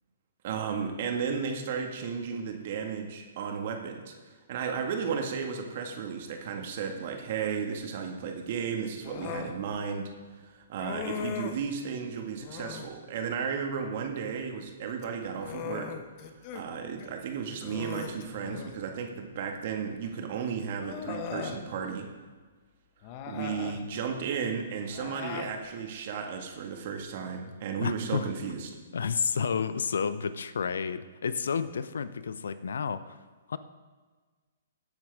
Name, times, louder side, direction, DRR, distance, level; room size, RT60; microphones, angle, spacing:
voice 1, 0.4-10.1 10.4-15.9 16.5-22.1 23.3-28.7, right 6 dB, 50° right, 3 dB, 1.8 m, -34 dB
Human voice, 9.0-9.6 10.8-11.7 12.4-12.9 14.9-16.7 17.0-17.1 17.6-18.8 20.0-20.1 20.8-21.6 23.0-23.8 24.9-25.6, left 7 dB, 35° left, 1.0 m, -39 dB
voice 2, 27.8-28.3 28.9-33.2 33.5-33.6, left 6 dB, 70° left, 15 dB, 0.6 m, -31 dB
17.0 x 8.8 x 3.6 m, 1.4 s
figure-of-eight pair, 120°, 0 cm